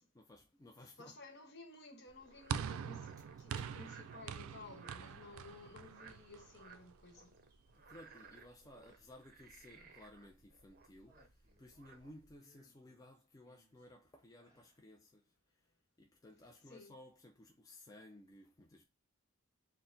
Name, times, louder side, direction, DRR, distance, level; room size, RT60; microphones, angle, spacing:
voice 1, 0.0-1.2 7.7-15.7 16.0-18.8, left 1 dB, 15° left, 0.3 m, -58 dB
voice 2, 1.0-3.1 3.4-7.4 16.7-16.9, left 3 dB, 55° left, 1.0 m, -55 dB
Frog, 2.1-12.4, right 5 dB, 45° right, 0.7 m, -60 dB
sound 1, 2.5-6.9, right 7 dB, 85° right, 0.3 m, -44 dB
sound 2, 3.2-3.7 4.2-4.6 6.1-6.2 8.8-9.4 9.6-10.0 10.8-11.8 12.4-13.9 14.3-14.8 15.3-15.4, equal, 20° right, 1.5 m, -69 dB
4.1 x 2.1 x 3.8 m
head